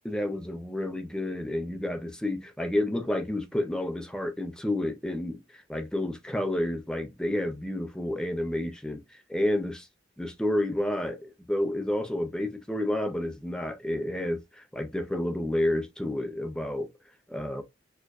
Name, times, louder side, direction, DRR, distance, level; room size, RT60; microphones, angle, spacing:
voice 1, 0.0-9.8 10.2-16.9 17.3-17.6, left 1 dB, 5° left, 0.4 m, -30 dB
4.4 x 2.5 x 2.2 m
head